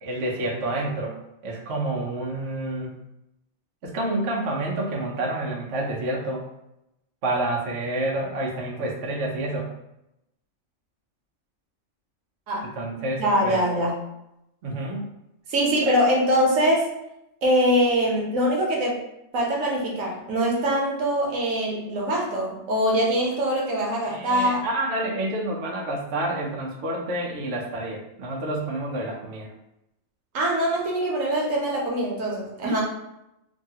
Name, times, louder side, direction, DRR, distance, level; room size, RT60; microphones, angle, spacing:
voice 1, 0.0-1.2 1.4-2.9 3.8-6.4 7.2-9.7 12.7-13.6 14.6-15.0 15.8-15.9 24.0-29.5 32.6-32.8, right 1 dB, 65° right, -2 dB, 0.9 m, -28 dB
voice 2, 13.2-13.9 15.5-16.9 17.4-18.9 19.3-24.7 30.3-32.8, equal, 90° right, -2 dB, 1.1 m, -23 dB
3.2 x 2.2 x 2.7 m, 0.86 s
omnidirectional pair, 1.4 m